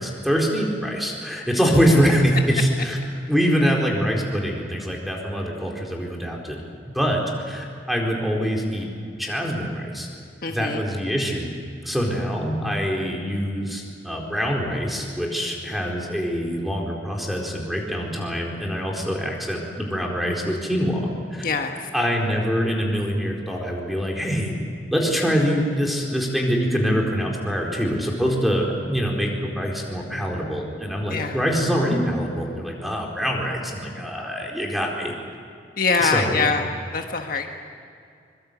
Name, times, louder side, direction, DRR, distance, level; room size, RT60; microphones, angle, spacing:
voice 1, 0.0-3.0 3.3-6.6 6.9-8.9 9.2-10.1 10.5-11.5 11.8-21.5 21.9-24.5 24.9-35.1 36.0-36.5, equal, ahead, -1 dB, 4.3 m, -24 dB
voice 2, 10.4-10.8 21.4-21.7 31.1-31.4 35.8-36.6 36.9-37.5, left 4 dB, 55° left, 4 dB, 1.4 m, -23 dB
24.0 x 23.0 x 8.2 m, 2.3 s
head